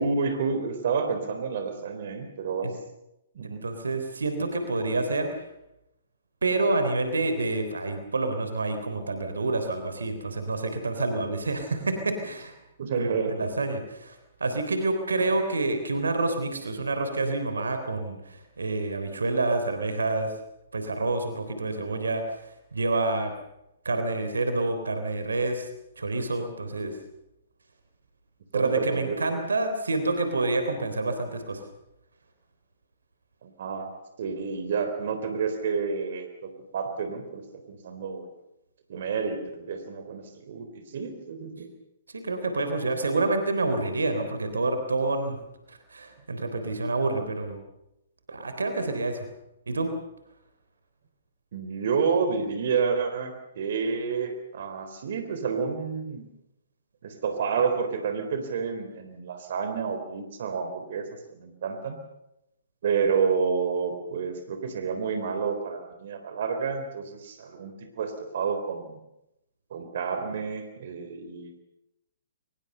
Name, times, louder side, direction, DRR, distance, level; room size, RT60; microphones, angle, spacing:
voice 1, 0.0-2.7 3.3-3.6 12.8-13.5 15.2-15.3 24.1-24.2 28.5-29.2 33.4-33.9 34.2-37.4 37.7-38.3 38.9-41.7 51.5-56.2 57.0-62.0 62.8-69.0 69.7-71.6, right 5 dB, 60° right, 8 dB, 3.7 m, -29 dB
voice 2, 3.4-5.3 6.4-12.5 12.9-20.3 20.7-22.4 22.7-23.3 23.9-25.7 26.0-26.9 28.5-31.6 42.2-45.4 45.7-47.6 48.3-49.3 49.7-49.9, right 2 dB, 80° right, 8 dB, 3.6 m, -28 dB
23.5 x 21.0 x 6.8 m, 0.87 s
figure-of-eight pair, 125°, 0 cm